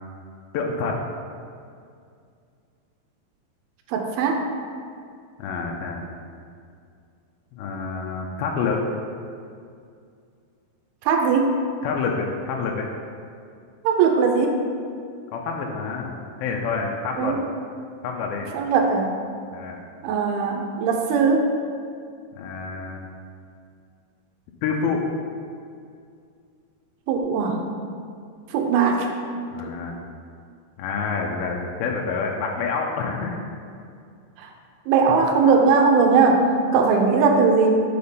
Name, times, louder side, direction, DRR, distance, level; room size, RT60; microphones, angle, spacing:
voice 1, 0.5-1.0 5.4-6.0 7.5-8.9 11.8-12.9 15.3-16.1 16.4-17.4 18.0-18.5 19.5-19.8 22.4-23.0 24.6-25.0 29.5-30.0 30.8-33.4, left 5 dB, 85° left, 1 dB, 2.2 m, -27 dB
voice 2, 3.9-4.4 11.0-11.6 13.8-14.6 17.2-17.4 18.5-19.1 20.0-21.5 27.1-27.6 28.5-29.1 29.6-29.7 34.4-34.5 34.9-37.7, right 5 dB, 80° right, 3 dB, 2.4 m, -19 dB
6.8 x 4.3 x 5.4 m, 2.3 s
omnidirectional pair, 4.8 m